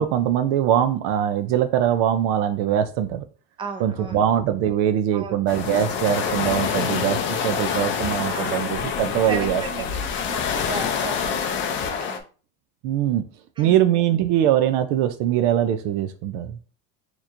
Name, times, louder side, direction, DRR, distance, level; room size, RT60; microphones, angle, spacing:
voice 1, 0.0-3.2 3.8-9.6 12.8-13.3 13.6-16.6, right 10 dB, 65° right, 10 dB, 0.5 m, -22 dB
voice 2, 3.6-4.2 5.1-5.4 8.2-8.7 9.3-12.2 13.6-14.0, right 3 dB, 15° right, 3 dB, 0.6 m, -35 dB
sound 1, 5.5-12.2, left 7 dB, 35° left, 0.4 m, -26 dB
4.2 x 2.9 x 2.5 m, 0.37 s
cardioid pair, 155°, 36 cm